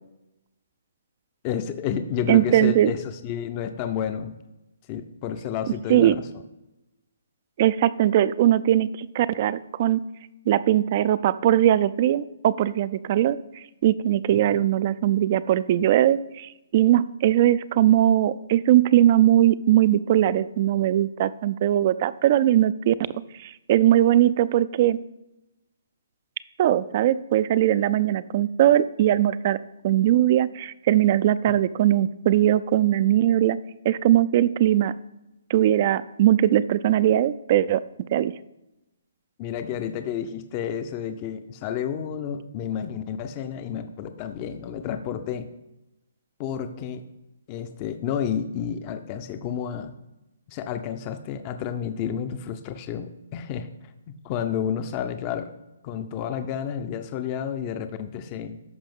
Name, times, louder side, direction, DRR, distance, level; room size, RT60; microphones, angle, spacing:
voice 1, 1.4-4.4 4.9-6.3 14.3-14.4 39.4-45.5 46.4-47.0 47.5-49.9 50.5-55.5 55.8-58.6, left 8 dB, 30° left, 9 dB, 0.5 m, -30 dB
voice 2, 2.3-2.9 5.9-6.2 7.6-10.0 10.5-22.9 23.4-25.0 26.6-29.6 29.8-33.6 33.8-34.9 35.5-37.8 38.1-38.3, right 12 dB, 40° right, 16 dB, 0.3 m, -20 dB
13.0 x 5.1 x 3.6 m, 0.96 s
hypercardioid pair, 145°, 0 cm